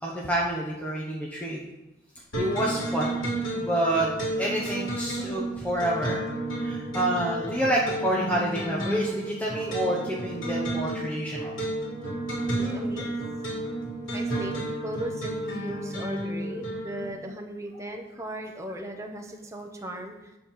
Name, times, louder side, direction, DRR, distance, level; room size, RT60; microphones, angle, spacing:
voice 1, 0.0-1.6 2.4-3.2 3.5-4.1 4.4-6.2 6.6-11.6, right 1 dB, 10° left, -5 dB, 1.1 m, -28 dB
sound 1, 2.3-17.1, right 1 dB, 80° left, 2.9 m, -32 dB
voice 2, 12.4-13.1 14.1-20.4, equal, 15° right, 2 dB, 1.0 m, -37 dB
11.0 x 4.3 x 6.8 m, 0.97 s
head